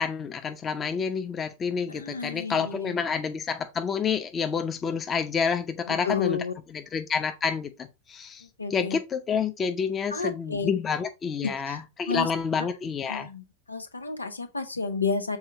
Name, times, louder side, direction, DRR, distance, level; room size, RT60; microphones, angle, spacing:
voice 1, 0.0-8.4 8.7-13.3, left 6 dB, 20° left, 0.8 m, -29 dB
voice 2, 1.9-3.0 5.9-6.5 8.6-9.0 10.1-10.7 11.4-12.3 13.1-13.4 13.7-15.4, left 5 dB, 80° left, 1.1 m, -31 dB
7.3 x 4.3 x 3.9 m
figure-of-eight pair, 90°, 0 cm